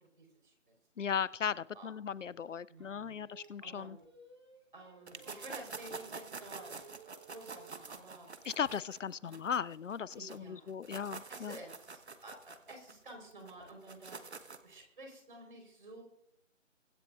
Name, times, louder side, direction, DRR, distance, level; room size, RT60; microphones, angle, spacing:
voice 1, 0.2-0.7 1.7-1.9 2.7-3.3 3.6-4.0 4.7-8.3 9.2-9.4 10.1-10.7 11.3-14.2 14.6-16.0, right 2 dB, 40° right, 3 dB, 4.4 m, -52 dB
voice 2, 1.0-4.0 8.4-11.6, left 7 dB, 75° left, 21 dB, 0.5 m, -37 dB
Singing, 2.8-8.0, right 4 dB, 20° right, 1.1 m, -58 dB
sound 1, 5.1-10.4 10.7-14.7, right 4 dB, 60° right, 1.2 m, -47 dB
24.0 x 10.0 x 2.5 m, 0.74 s
figure-of-eight pair, 165°, 38 cm